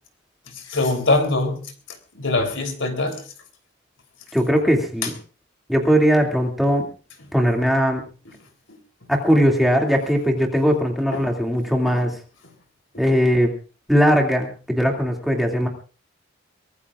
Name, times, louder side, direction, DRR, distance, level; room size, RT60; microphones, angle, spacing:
voice 1, 0.5-1.7 2.1-3.2 5.0-5.1 11.1-11.3 11.9-12.0, left 2 dB, 70° left, 3.5 m, -23 dB
voice 2, 4.3-5.1 5.7-6.9 7.3-8.0 9.1-12.1 13.0-13.5 13.9-15.7, equal, ahead, 2.5 m, -19 dB
24.0 x 19.0 x 2.5 m
head